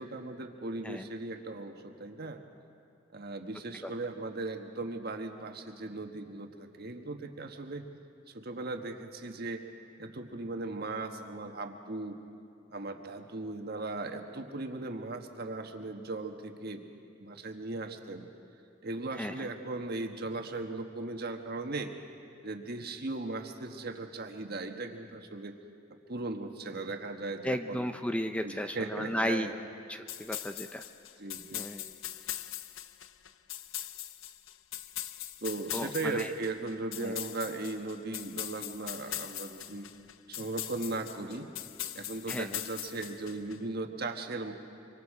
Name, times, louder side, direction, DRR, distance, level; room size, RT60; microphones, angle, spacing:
voice 1, 0.0-2.4 3.1-7.9 8.3-9.6 10.0-12.2 12.7-16.8 17.2-18.3 18.8-21.9 22.4-25.5 26.1-27.8 28.4-29.5 31.2-31.7 35.4-39.9 40.3-41.5 41.9-44.5, right 2 dB, 50° right, 5 dB, 1.4 m, -38 dB
voice 2, 19.2-19.5 27.4-29.5 29.9-30.8 31.5-31.9 35.7-36.3 37.0-37.2 42.3-42.6, equal, 5° left, 7 dB, 0.5 m, -34 dB
sound 1, 30.1-43.6, left 12 dB, 80° left, 0.6 m, -41 dB
25.0 x 25.0 x 4.9 m, 2.5 s
head